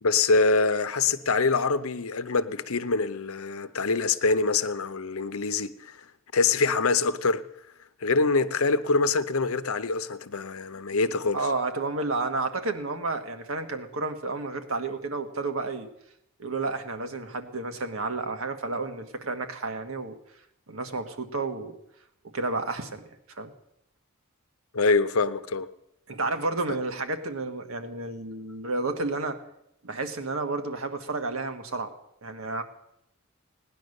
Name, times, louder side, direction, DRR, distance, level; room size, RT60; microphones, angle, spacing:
voice 1, 0.0-6.0 6.3-7.4 8.0-11.4 24.7-25.7, left 4 dB, 80° left, 0.8 m, -25 dB
voice 2, 11.3-15.9 16.4-20.2 20.7-21.7 22.3-23.0 23.4-23.5 26.1-29.4 29.8-31.9 32.2-32.6, right 3 dB, 70° right, 1.5 m, -31 dB
17.5 x 10.5 x 6.6 m
head